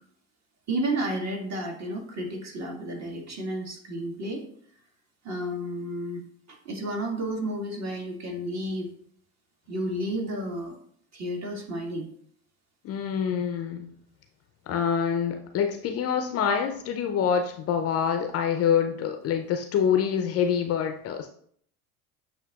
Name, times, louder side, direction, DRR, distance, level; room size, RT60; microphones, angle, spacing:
voice 1, 0.7-4.4 5.2-6.2 6.5-8.9 9.7-10.7 11.1-12.1, right 1 dB, 40° right, 2 dB, 1.5 m, -31 dB
voice 2, 12.8-13.9 14.7-21.3, left 7 dB, 35° left, 6 dB, 0.4 m, -26 dB
8.1 x 2.8 x 2.3 m, 0.62 s
hypercardioid pair, 80°, 43 cm